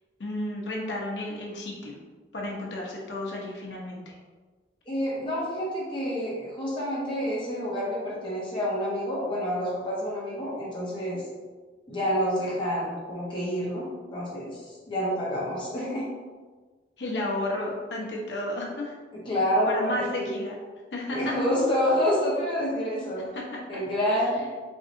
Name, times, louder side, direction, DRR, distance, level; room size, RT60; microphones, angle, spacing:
voice 1, 0.2-2.0 2.3-4.1 17.0-18.9 19.7-20.5 20.9-21.3 23.3-23.6, left 1 dB, 90° left, -3 dB, 0.9 m, -32 dB
voice 2, 4.9-11.2 11.9-16.1 19.1-20.4 21.1-23.2 23.7-24.5, equal, 30° left, -6 dB, 1.2 m, -28 dB
4.6 x 2.7 x 2.7 m, 1.4 s
head